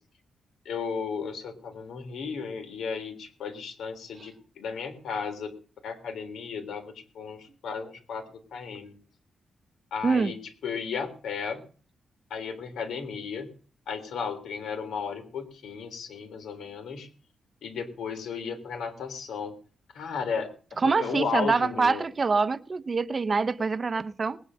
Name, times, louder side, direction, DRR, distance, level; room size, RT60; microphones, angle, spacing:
voice 1, 0.7-5.5 5.8-8.3 8.5-9.0 9.9-11.6 12.3-13.5 13.9-17.1 17.6-19.6 19.9-20.5 20.8-22.0, left 5 dB, 90° left, 3.7 m, -34 dB
voice 2, 10.0-10.3 20.8-24.4, right 4 dB, 30° right, 0.8 m, -25 dB
20.0 x 10.0 x 6.4 m
wide cardioid pair, 150°, 0 cm